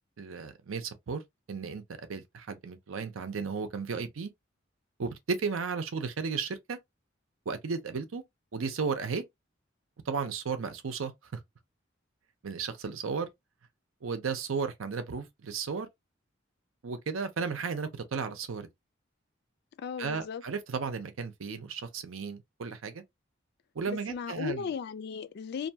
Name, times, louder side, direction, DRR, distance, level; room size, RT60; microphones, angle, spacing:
voice 1, 0.2-1.2 1.5-4.3 5.0-6.8 7.5-8.2 8.5-9.2 10.1-11.1 12.4-13.3 14.0-15.9 16.8-18.7 20.0-23.0 23.7-24.7, right 5 dB, 90° right, 0.6 m, -34 dB
voice 2, 19.8-20.4 23.9-25.7, left 6 dB, 55° left, 0.3 m, -36 dB
2.6 x 2.2 x 2.7 m
head